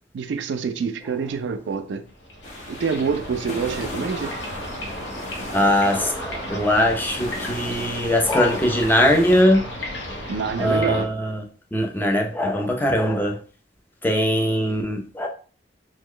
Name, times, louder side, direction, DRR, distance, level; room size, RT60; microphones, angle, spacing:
voice 1, 0.1-2.0 2.7-4.3 10.3-11.1, right 5 dB, 75° right, 0.4 m, -26 dB
sound 1, 2.1-11.0, left 1 dB, 80° left, 0.9 m, -34 dB
sound 2, 2.4-9.4, left 1 dB, 45° left, 0.7 m, -38 dB
voice 2, 5.5-9.6 10.1-10.2 10.6-11.4 11.7-13.4 14.0-15.3, equal, 10° left, 0.5 m, -21 dB
3.1 x 2.1 x 3.7 m
head